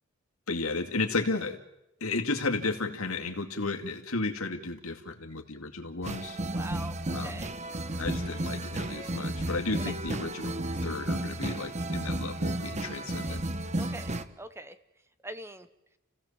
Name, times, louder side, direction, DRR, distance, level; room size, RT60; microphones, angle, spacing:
voice 1, 0.5-1.6 2.0-6.4 7.1-7.5 8.0-13.4, left 3 dB, 90° left, 4 dB, 2.4 m, -33 dB
sound 1, 6.0-14.2, right 1 dB, 35° right, 1.1 m, -33 dB
voice 2, 6.5-7.5 9.7-9.8 13.8-14.1 14.4-14.8 15.2-15.7, right 2 dB, 10° right, 12 dB, 0.9 m, -42 dB
30.0 x 16.5 x 7.4 m, 0.90 s
head